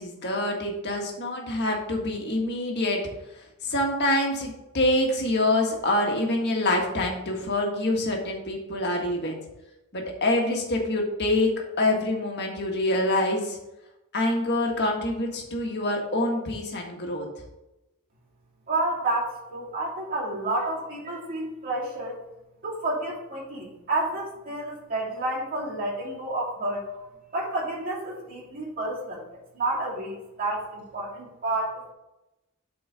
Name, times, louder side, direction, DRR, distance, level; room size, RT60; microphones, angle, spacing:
voice 1, 0.0-3.0 3.6-9.4 9.9-11.5 11.8-13.6 14.1-17.3, left 1 dB, 50° left, 1 dB, 1.6 m, -26 dB
voice 2, 18.7-22.2 22.6-27.1 27.3-29.2 29.5-31.9, right 2 dB, 40° right, -6 dB, 3.0 m, -30 dB
7.9 x 4.3 x 5.1 m, 0.93 s
head